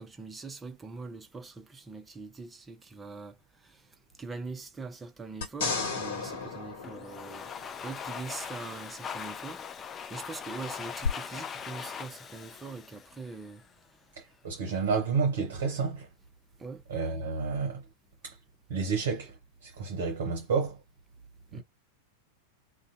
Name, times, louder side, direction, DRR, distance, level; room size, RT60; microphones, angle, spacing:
voice 1, 0.0-3.4 3.6-3.8 4.2-9.6 10.1-13.6 16.6-16.8 21.5-21.6, right 4 dB, 15° right, 0.6 m, -42 dB
sound 1, 5.4-7.9 11.0-11.1, left 5 dB, 55° left, 1.1 m, -34 dB
Domestic sounds home sounds, 6.8-13.7, left 7 dB, 25° left, 0.4 m, -41 dB
voice 2, 14.2-16.1 16.9-17.8 18.2-18.4 18.7-19.4 19.6-20.8 21.5-21.6, right 5 dB, 55° right, 0.8 m, -30 dB
2.6 x 2.2 x 2.6 m
figure-of-eight pair, 90°, 0 cm